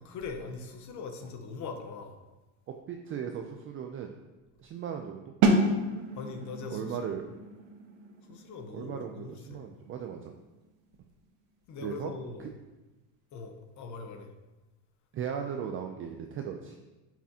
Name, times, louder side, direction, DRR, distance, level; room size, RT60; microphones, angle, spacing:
voice 1, 0.0-2.2 6.1-7.1 8.3-9.6 11.7-12.5 13.3-14.3, left 4 dB, 45° left, 5 dB, 1.0 m, -41 dB
voice 2, 2.7-4.1 4.6-5.2 6.7-7.2 8.7-10.3 11.8-12.1 12.4-12.5 15.1-16.8, right 8 dB, 35° right, 4 dB, 0.4 m, -37 dB
sound 1, 5.4-11.1, right 2 dB, 90° right, 1.2 m, -31 dB
8.4 x 6.0 x 2.8 m, 1.1 s
cardioid pair, 140°, 41 cm